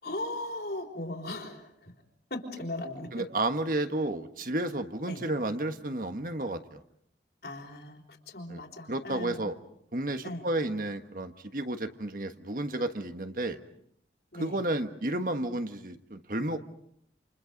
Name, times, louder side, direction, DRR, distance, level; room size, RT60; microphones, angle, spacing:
voice 1, 0.0-1.9 2.3-3.2 5.1-5.2 7.4-9.5 10.2-10.5 14.3-14.6, left 1 dB, 65° left, 2 dB, 4.2 m, -38 dB
voice 2, 3.1-6.8 8.5-8.6 8.9-9.6 9.9-13.6 14.3-16.6, right 1 dB, 50° right, 8 dB, 1.5 m, -32 dB
29.0 x 28.0 x 5.3 m, 0.70 s
head